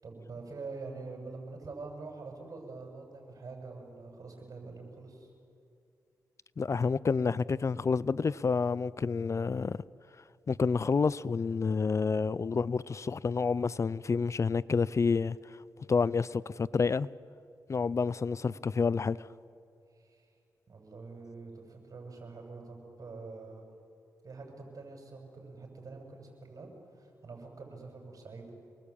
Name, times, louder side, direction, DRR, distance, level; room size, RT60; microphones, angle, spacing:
voice 1, 0.0-5.3 20.0-20.3 20.7-23.6 24.2-26.7 27.0-28.5, right 3 dB, 55° right, 7.5 m, -45 dB
voice 2, 6.6-9.8 10.5-15.4 15.9-17.1 17.7-19.2, left 5 dB, 45° left, 0.6 m, -29 dB
28.5 x 20.5 x 8.7 m
cardioid pair, 60°, 7 cm